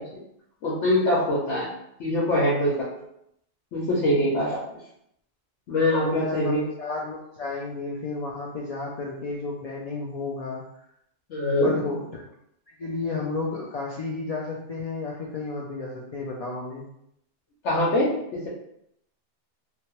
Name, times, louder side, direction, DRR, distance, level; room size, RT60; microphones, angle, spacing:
voice 1, 0.6-1.7 2.0-2.9 3.7-4.6 5.7-6.7 11.3-11.8 17.6-18.5, left 1 dB, 90° left, -6 dB, 1.0 m, -23 dB
voice 2, 6.1-10.6 11.6-12.1 12.8-16.8, left 3 dB, 65° left, -3 dB, 0.3 m, -32 dB
2.9 x 2.1 x 2.9 m, 0.75 s
omnidirectional pair, 1.2 m